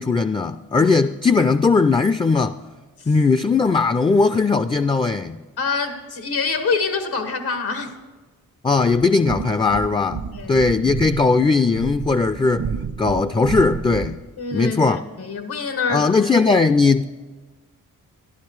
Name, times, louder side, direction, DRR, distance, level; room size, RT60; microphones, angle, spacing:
voice 1, 0.0-2.6 3.1-5.4 8.6-12.7 13.0-14.2 14.5-15.0 15.9-17.0, left 4 dB, 15° left, 0.3 m, -18 dB
voice 2, 5.6-8.0 10.3-10.7 14.4-16.1, left 4 dB, 85° left, 1.3 m, -26 dB
sound 1, 9.0-14.3, right 6 dB, 75° right, 1.1 m, -31 dB
12.0 x 11.5 x 4.6 m
cardioid pair, 55°, 37 cm